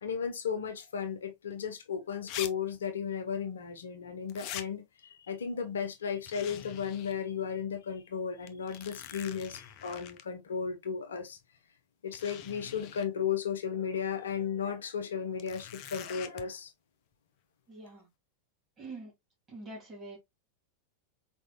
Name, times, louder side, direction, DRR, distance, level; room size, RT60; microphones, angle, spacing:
voice 1, 0.0-11.4 12.0-16.7, left 7 dB, 65° left, 0.9 m, -35 dB
sound 1, 1.5-1.6 2.3-2.5 2.7-2.8 4.3-4.7 6.3-7.2 7.6-7.7 8.5-10.2 11.4-11.5 12.1-13.1 15.4-16.4, left 11 dB, 40° left, 0.6 m, -44 dB
voice 2, 17.7-18.1 18.8-19.1 19.5-20.2, right 2 dB, 25° right, 2.8 m, -45 dB
4.5 x 4.0 x 2.2 m
figure-of-eight pair, 90°, 0 cm